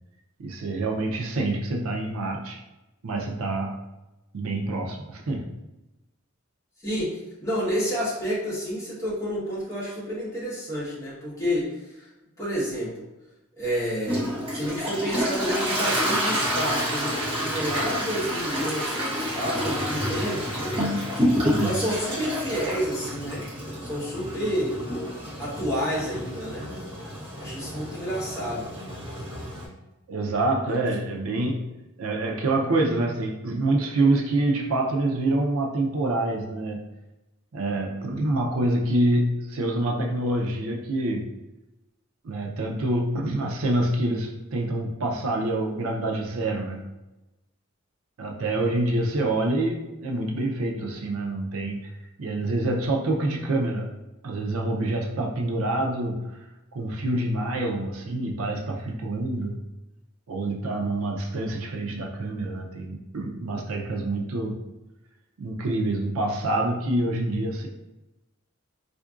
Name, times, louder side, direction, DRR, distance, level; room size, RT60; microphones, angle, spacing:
voice 1, 0.4-2.6 3.0-3.8 4.3-5.6 21.4-21.7 30.1-31.7 32.0-36.8 37.5-41.3 42.2-46.9 48.2-51.9 52.2-53.9 54.2-56.3 56.7-59.6 60.3-64.6 65.4-67.7, right 2 dB, 85° right, 1 dB, 0.5 m, -26 dB
voice 2, 6.8-12.1 12.4-13.1 13.6-21.0 21.6-23.4 23.8-24.8 25.4-26.7 27.4-28.7 30.7-30.8, equal, 15° left, -9 dB, 1.2 m, -29 dB
Toilet flush, 14.1-29.7, equal, 25° right, 1.0 m, -29 dB
4.3 x 2.6 x 2.4 m, 0.99 s
head